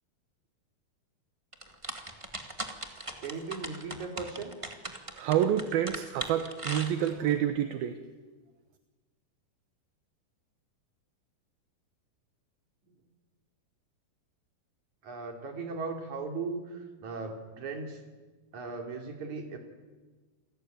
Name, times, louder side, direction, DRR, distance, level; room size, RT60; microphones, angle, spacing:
sound 1, 1.5-7.4, right 2 dB, 20° right, 0.8 m, -39 dB
voice 1, 3.2-4.5 15.0-18.0 18.5-19.6, right 4 dB, 50° right, 4 dB, 4.3 m, -37 dB
voice 2, 5.1-8.0, right 10 dB, 75° right, 9 dB, 2.9 m, -28 dB
28.0 x 20.0 x 9.3 m, 1.3 s
omnidirectional pair, 4.4 m